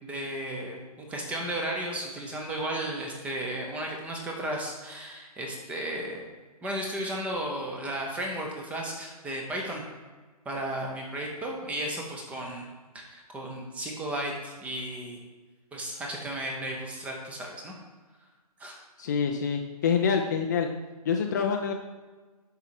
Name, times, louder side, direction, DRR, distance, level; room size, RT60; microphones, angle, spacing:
voice 1, 0.0-6.3 6.6-9.8 10.4-12.7 12.9-15.2 15.7-17.7 18.6-18.8, right 1 dB, 5° right, 0 dB, 0.8 m, -34 dB
voice 2, 19.0-20.7 21.1-21.7, left 6 dB, 30° left, 3 dB, 0.5 m, -26 dB
6.8 x 5.6 x 4.7 m, 1.3 s
hypercardioid pair, 155°, 20 cm